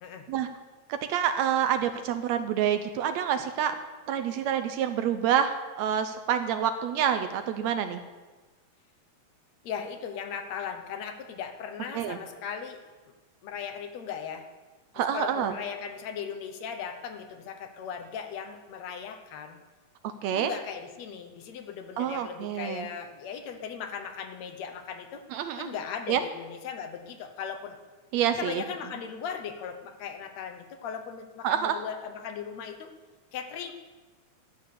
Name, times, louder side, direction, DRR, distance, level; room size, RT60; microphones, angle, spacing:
voice 1, 0.9-3.8 4.1-8.0 11.9-12.2 15.0-15.6 20.2-20.5 22.0-22.9 25.3-25.7 26.1-26.2 28.1-28.6 31.4-31.8, right 9 dB, 75° right, 9 dB, 1.8 m, -27 dB
voice 2, 9.6-12.8 13.4-14.5 15.0-19.6 20.3-25.3 25.6-27.8 28.4-32.9 33.3-33.7, left 7 dB, 70° left, 6 dB, 1.9 m, -38 dB
13.5 x 8.3 x 6.7 m, 1.3 s
omnidirectional pair, 3.5 m